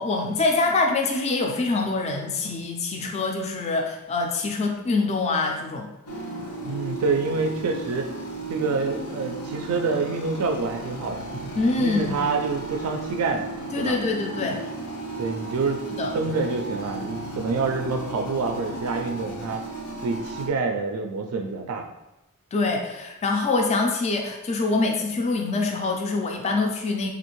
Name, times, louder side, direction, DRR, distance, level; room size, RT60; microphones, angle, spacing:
voice 1, 0.0-5.9 11.4-12.2 13.7-14.6 15.9-16.1 22.5-27.1, left 3 dB, 30° left, 2 dB, 0.3 m, -25 dB
sound 1, 6.1-20.5, right 2 dB, 80° left, 0.6 m, -35 dB
voice 2, 6.6-8.1 8.5-11.3 11.8-13.5 13.8-13.9 15.2-15.8 16.1-19.6 20.0-21.8, right 4 dB, 75° right, 4 dB, 0.3 m, -27 dB
3.4 x 2.4 x 3.0 m, 0.97 s
head